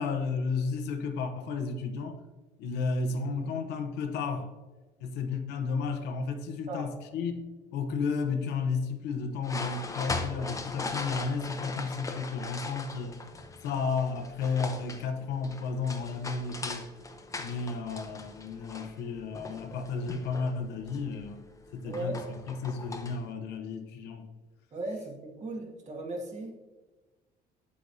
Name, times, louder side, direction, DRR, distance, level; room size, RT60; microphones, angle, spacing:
voice 1, 0.0-2.2 2.6-4.5 5.0-7.4 7.7-13.2 13.6-16.9 17.4-21.4 21.7-24.3, left 4 dB, 85° left, 6 dB, 1.0 m, -33 dB
sound 1, 9.4-23.3, left 3 dB, 20° left, 0.8 m, -40 dB
voice 2, 21.8-22.2 24.7-26.6, right 1 dB, 40° right, 1 dB, 1.8 m, -37 dB
8.2 x 8.0 x 2.8 m, 1.2 s
cardioid pair, 110°, 17 cm